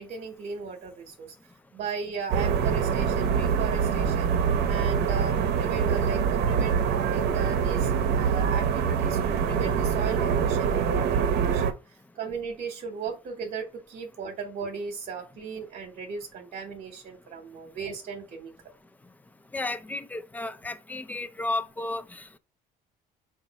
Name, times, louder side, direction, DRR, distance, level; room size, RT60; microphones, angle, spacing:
voice 1, 0.0-1.4 1.7-6.8 7.1-18.5, right 5 dB, 55° right, 1.0 m, -36 dB
sound 1, 2.3-11.7, right 7 dB, 75° right, 0.7 m, -25 dB
voice 2, 19.5-22.3, left 2 dB, 10° left, 0.4 m, -33 dB
5.1 x 2.5 x 4.0 m
cardioid pair, 110°, 17 cm